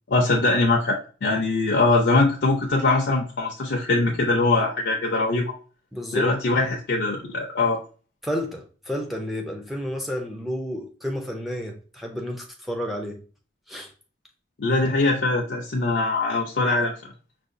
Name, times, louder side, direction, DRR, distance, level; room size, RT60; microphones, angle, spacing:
voice 1, 0.1-5.5 6.1-7.8 14.6-16.9, left 3 dB, 70° left, 0.5 m, -22 dB
voice 2, 5.9-6.3 8.2-13.2 13.7-13.9, equal, ahead, 0.5 m, -31 dB
4.7 x 2.3 x 2.5 m
head